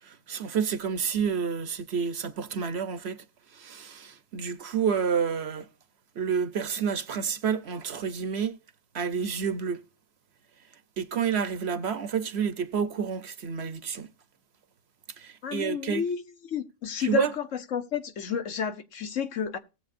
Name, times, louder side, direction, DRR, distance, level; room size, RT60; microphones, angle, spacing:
voice 1, 0.0-3.2 3.5-5.7 6.2-8.6 8.9-9.8 11.0-14.1 15.2-16.0 17.0-17.3, right 6 dB, 60° right, 1.0 m, -29 dB
voice 2, 15.4-17.3 17.7-19.6, left 7 dB, 70° left, 1.3 m, -31 dB
18.0 x 7.9 x 2.5 m
omnidirectional pair, 1.4 m